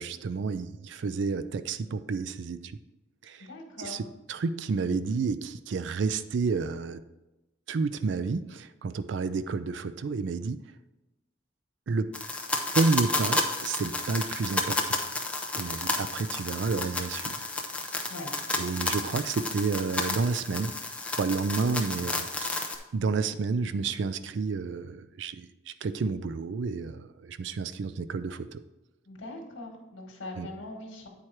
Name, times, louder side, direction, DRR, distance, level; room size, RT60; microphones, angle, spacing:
voice 1, 0.0-2.7 3.2-3.5 3.8-7.0 7.7-10.6 11.9-12.1 12.7-15.0 15.5-17.4 18.5-20.7 21.2-22.7 22.9-25.5 25.8-28.6 30.4-30.5, right 4 dB, 65° right, 12 dB, 0.4 m, -30 dB
voice 2, 3.4-4.0 18.1-18.3 29.0-31.1, left 2 dB, 90° left, 0 dB, 1.3 m, -41 dB
sound 1, 12.1-22.8, left 2 dB, 5° left, 0.6 m, -31 dB
8.6 x 4.7 x 4.4 m, 1.0 s
head